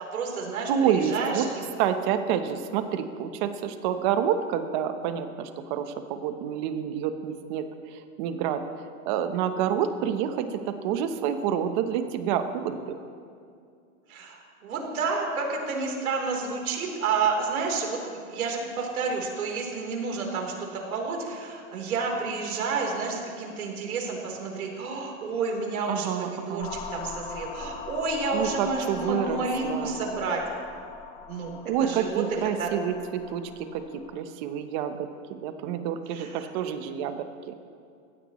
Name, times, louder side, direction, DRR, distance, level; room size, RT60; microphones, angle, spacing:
voice 1, 0.0-1.6 14.1-18.0 18.3-30.4 31.3-31.5 31.8-32.7 36.1-36.5, right 4 dB, 80° right, 0 dB, 3.9 m, -30 dB
voice 2, 0.7-1.5 1.8-8.6 9.1-13.0 25.9-26.7 28.3-30.0 31.7-37.5, right 8 dB, 35° right, 8 dB, 1.0 m, -28 dB
sound 1, 26.6-34.2, left 6 dB, 15° left, 0.6 m, -41 dB
21.5 x 16.0 x 3.2 m, 2.3 s
hypercardioid pair, 155°, 42 cm